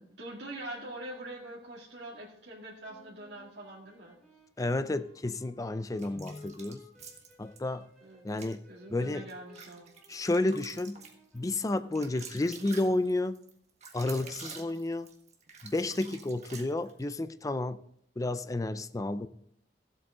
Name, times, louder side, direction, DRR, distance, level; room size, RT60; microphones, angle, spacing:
voice 1, 0.0-4.2 8.0-8.2 8.7-10.0, right 1 dB, 80° right, 2.1 m, -44 dB
sound 1, 2.9-13.4, left 2 dB, ahead, 4.4 m, -60 dB
voice 2, 4.6-6.8 7.4-7.9 8.2-8.6 8.9-9.3 10.1-11.0 11.3-13.4 13.9-15.1 15.6-17.8 18.2-19.3, left 2 dB, 20° left, 0.4 m, -31 dB
sound 2, 6.0-7.6 8.3-8.6 9.1-17.1, right 5 dB, 40° right, 1.6 m, -48 dB
15.5 x 8.0 x 3.7 m
head